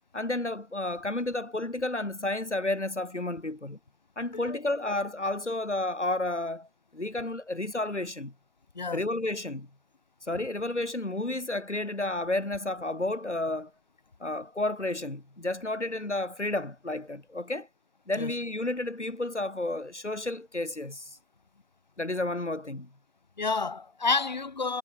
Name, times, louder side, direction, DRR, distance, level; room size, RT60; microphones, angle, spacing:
voice 1, 0.1-3.8 4.2-8.3 8.9-9.7 10.2-13.7 14.2-17.7 18.1-21.2 22.0-22.9, left 2 dB, 70° left, 4.0 m, -31 dB
voice 2, 23.4-24.8, left 4 dB, 35° left, 4.9 m, -29 dB
figure-of-eight pair, 160°, 36 cm